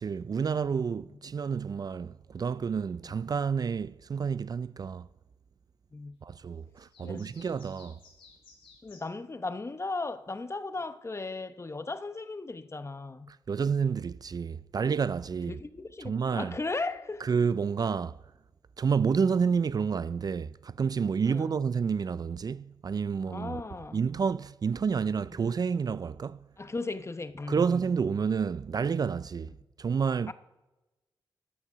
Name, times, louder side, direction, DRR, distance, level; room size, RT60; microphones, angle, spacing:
voice 1, 0.0-5.1 6.2-8.0 13.3-15.6 16.0-16.5 17.2-18.2 18.8-23.6 23.9-26.4 27.5-29.5 29.8-30.3, right 6 dB, 45° right, 0.3 m, -29 dB
sound 1, 6.7-9.1, left 5 dB, 90° left, 4.3 m, -57 dB
voice 2, 8.8-13.3 15.5-17.2 21.2-21.6 23.3-24.1 26.6-27.7 30.3-30.4, left 3 dB, 30° left, 0.9 m, -36 dB
13.0 x 7.1 x 6.7 m
cardioid pair, 55°, 9 cm